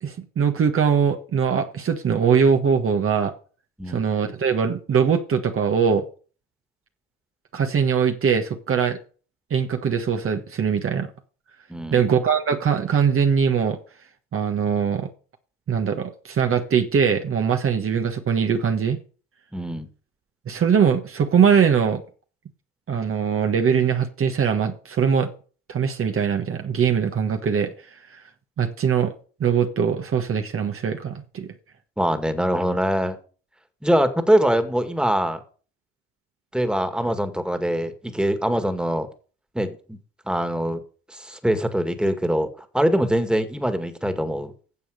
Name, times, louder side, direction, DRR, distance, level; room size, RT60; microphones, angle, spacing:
voice 1, 0.0-3.3 3.9-6.1 7.5-9.0 9.5-11.1 11.9-13.8 14.3-15.1 15.7-19.0 20.5-22.0 22.9-25.3 25.7-27.7 28.6-29.1 29.4-31.5, right 7 dB, 50° right, 1.4 m, -21 dB
voice 2, 11.7-12.1 19.5-19.9 32.0-33.2 33.8-35.4 36.5-39.1 39.5-40.0 40.3-40.8 41.1-44.5, equal, 5° right, 2.0 m, -23 dB
10.0 x 7.1 x 6.5 m
supercardioid pair, 70°, 29 cm